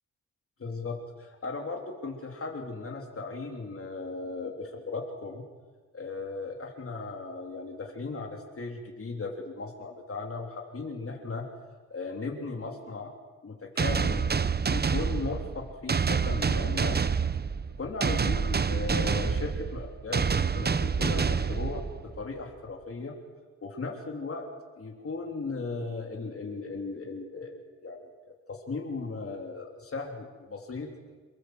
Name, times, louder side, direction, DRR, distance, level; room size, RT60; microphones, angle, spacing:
voice 1, 0.6-5.4 5.9-11.4 11.9-13.1 13.4-14.3 14.7-17.0 17.8-20.2 20.5-21.8 22.2-23.1 23.6-24.5 24.8-28.1 28.5-30.9, left 3 dB, 50° left, 1 dB, 3.6 m, -37 dB
sound 1, 13.8-22.2, right 5 dB, 35° right, 0.7 m, -27 dB
28.5 x 18.0 x 8.1 m, 1.5 s
wide cardioid pair, 110°, 30 cm